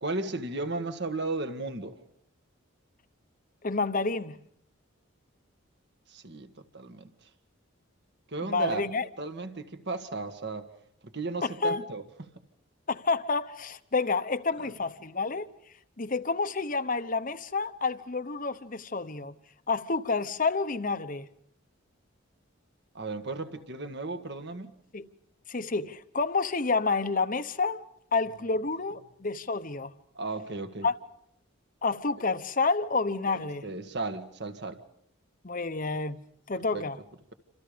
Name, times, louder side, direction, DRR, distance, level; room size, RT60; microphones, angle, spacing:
voice 1, 0.0-2.0 6.1-7.1 8.3-8.8 9.2-10.7 11.0-12.0 14.6-14.7 22.9-24.7 30.2-30.9 33.3-34.8 36.7-36.9, right 3 dB, 55° right, 1.8 m, -35 dB
voice 2, 3.6-4.4 8.4-9.0 11.4-11.8 12.9-15.5 16.0-19.4 19.7-21.3 24.9-25.1 25.5-27.8 28.1-29.9 30.8-30.9 31.8-33.7 35.4-36.2 36.5-37.0, left 4 dB, 40° left, 1.0 m, -29 dB
29.0 x 26.5 x 5.2 m
head